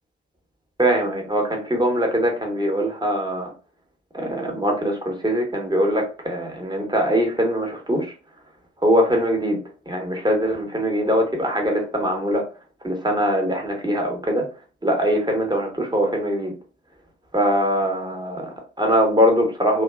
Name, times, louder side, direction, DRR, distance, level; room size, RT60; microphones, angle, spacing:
voice 1, 0.8-3.5 4.1-8.1 8.8-9.6 9.9-12.4 12.8-14.5 14.8-16.5 17.3-19.8, equal, 10° right, 1 dB, 1.0 m, -22 dB
2.5 x 2.3 x 2.2 m, 0.35 s
hypercardioid pair, 40°, 35 cm